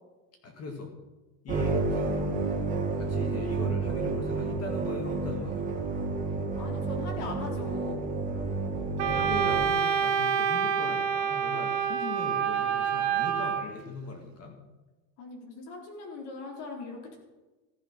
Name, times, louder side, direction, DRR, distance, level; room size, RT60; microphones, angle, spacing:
voice 1, 0.4-0.9 1.4-2.3 2.9-5.7 9.0-14.6, left 4 dB, 30° left, 3 dB, 2.1 m, -39 dB
sound 1, 1.5-9.7, right 3 dB, 15° right, 2.6 m, -30 dB
voice 2, 6.6-8.0 15.2-17.2, left 3 dB, 55° left, 0 dB, 4.0 m, -40 dB
Wind instrument woodwind instrument, 9.0-13.6, right 8 dB, 70° right, 1.8 m, -27 dB
15.0 x 10.0 x 5.9 m, 1.2 s
cardioid pair, 155°, 48 cm